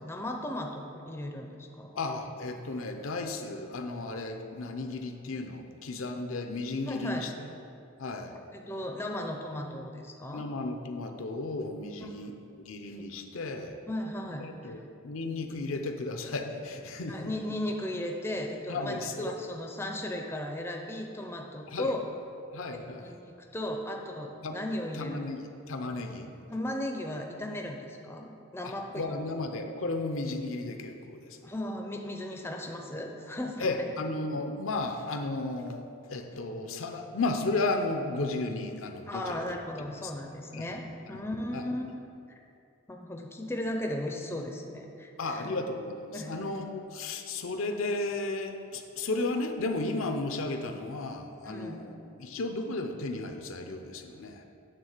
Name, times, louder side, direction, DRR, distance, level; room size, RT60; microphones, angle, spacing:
voice 1, 0.0-1.5 1.8-2.0 6.9-7.2 8.5-10.4 13.9-14.7 17.1-22.0 22.8-25.2 26.5-29.0 31.4-33.9 39.1-40.8 41.1-41.8 42.9-45.5 46.1-46.6 51.4-51.8, left 1 dB, 10° left, 2 dB, 0.5 m, -36 dB
voice 2, 1.9-7.5 8.0-8.4 10.3-13.8 14.4-17.3 18.7-19.3 21.7-22.0 22.5-23.1 24.4-24.6 24.9-26.3 28.6-31.5 33.6-35.8 36.1-40.1 40.5-40.7 41.1-41.2 41.5-41.6 45.2-54.4, left 2 dB, 75° left, 5 dB, 0.6 m, -34 dB
8.9 x 3.7 x 6.6 m, 2.6 s
head